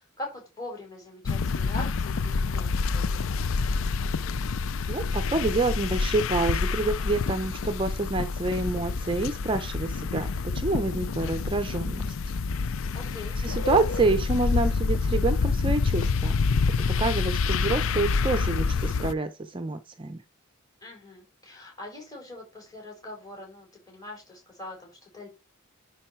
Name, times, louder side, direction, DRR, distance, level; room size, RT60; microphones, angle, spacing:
voice 1, 0.0-3.5 12.9-13.4 20.8-25.3, left 2 dB, 15° left, 4.6 m, -42 dB
sound 1, 1.3-19.1, left 4 dB, 65° left, 0.4 m, -27 dB
voice 2, 4.9-12.1 13.3-16.4 16.8-20.2, right 3 dB, 25° right, 0.6 m, -28 dB
10.0 x 4.7 x 4.4 m
head